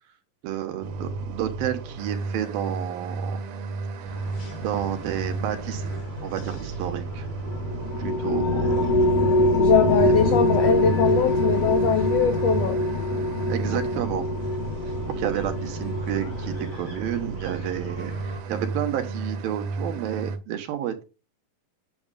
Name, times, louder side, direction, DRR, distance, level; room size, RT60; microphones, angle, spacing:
voice 1, 0.4-3.4 4.6-5.9 6.2-7.3 8.0-8.9 13.5-14.3 15.2-21.0, right 11 dB, 85° right, 2.9 m, -30 dB
sound 1, 0.8-20.4, right 3 dB, 65° right, 2.1 m, -33 dB
sound 2, 4.1-18.4, equal, 45° left, 1.0 m, -40 dB
sound 3, 7.5-17.2, left 1 dB, 65° left, 1.6 m, -24 dB
voice 2, 9.6-12.8, left 6 dB, 85° left, 1.4 m, -22 dB
8.6 x 6.3 x 2.3 m
omnidirectional pair, 4.0 m